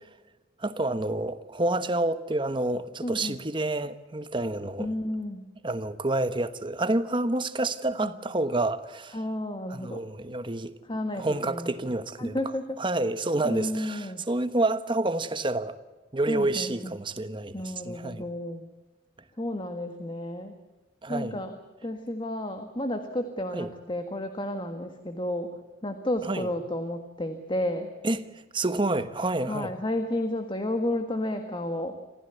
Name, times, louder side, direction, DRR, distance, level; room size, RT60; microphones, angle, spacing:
voice 1, 0.6-4.9 5.6-9.2 9.7-10.7 11.1-12.4 12.8-15.8 16.1-18.2 21.0-21.4 23.5-23.7 26.2-26.5 28.0-28.3 28.5-29.7, right 2 dB, 30° right, 1.2 m, -28 dB
voice 2, 3.0-3.4 4.8-5.4 8.0-8.1 9.1-10.0 10.9-11.7 12.2-12.6 13.4-14.2 16.3-16.9 17.5-18.7 19.4-20.6 21.1-21.5 21.8-27.9 29.5-32.0, left 1 dB, 30° left, 1.6 m, -32 dB
26.5 x 15.5 x 8.1 m
head